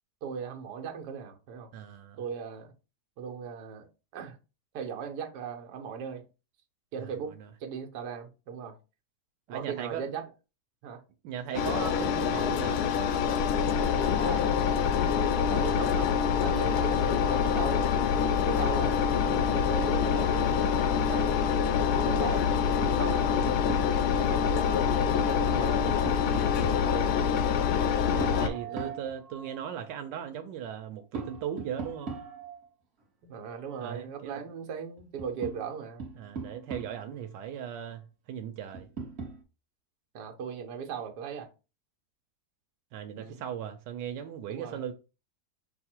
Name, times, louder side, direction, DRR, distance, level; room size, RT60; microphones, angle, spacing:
voice 1, 0.2-1.7 2.2-2.7 3.2-4.4 4.7-6.2 6.9-7.3 7.6-8.8 9.5-10.2 10.8-11.0 11.5-11.7 14.2-14.4 15.2-16.1 16.4-17.9 18.5-21.4 22.0-22.5 22.9-23.3 24.2-26.0 26.9-27.1 28.6-28.9 33.2-36.0 40.1-41.5 43.1-43.4 44.5-44.8, right 7 dB, 70° right, 1.3 m, -38 dB
voice 2, 1.7-2.2 7.0-7.5 9.5-10.0 11.2-12.8 16.5-16.7 26.3-26.9 28.1-32.1 33.8-34.4 36.2-38.9 42.9-44.9, right 9 dB, 90° right, 1.2 m, -38 dB
Engine, 11.5-28.5, left 7 dB, 70° left, 1.1 m, -26 dB
Tap, 22.8-24.0 25.4-26.9 28.2-29.6 31.1-32.7 34.5-34.6 35.0-37.1 38.7-39.4, right 4 dB, 45° right, 1.1 m, -40 dB
5.6 x 2.0 x 4.3 m
omnidirectional pair, 1.9 m